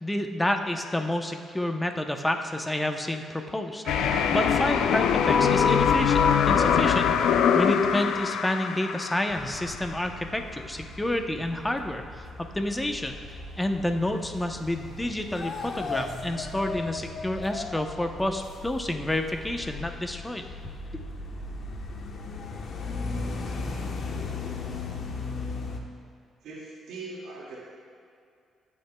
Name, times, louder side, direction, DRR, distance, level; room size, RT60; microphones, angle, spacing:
voice 1, 0.0-7.3 7.5-12.3 12.5-13.1 13.6-20.4 20.9-21.0, left 1 dB, 10° left, 5 dB, 0.8 m, -29 dB
Doorbell, 3.8-11.9, right 1 dB, 55° right, 1.2 m, -42 dB
sound 1, 3.9-9.8, left 7 dB, 80° left, 0.4 m, -23 dB
sound 2, 9.3-25.8, left 3 dB, 55° left, 1.0 m, -37 dB
voice 2, 26.4-27.6, right 3 dB, 85° right, -5 dB, 2.1 m, -40 dB
15.0 x 8.7 x 2.3 m, 2.4 s
cardioid pair, 90°, 0 cm